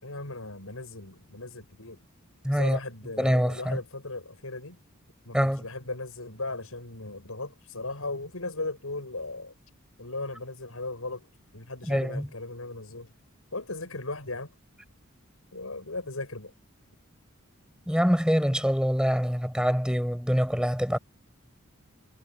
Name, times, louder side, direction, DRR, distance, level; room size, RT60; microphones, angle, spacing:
voice 1, 0.0-2.0 2.5-4.8 5.2-9.5 10.0-11.3 11.5-13.1 13.5-14.5 15.5-16.5, left 2 dB, 85° left, 6.8 m, -37 dB
voice 2, 2.4-2.8 3.2-3.8 5.3-5.6 11.9-12.3 17.9-21.0, equal, 5° right, 7.3 m, -25 dB
head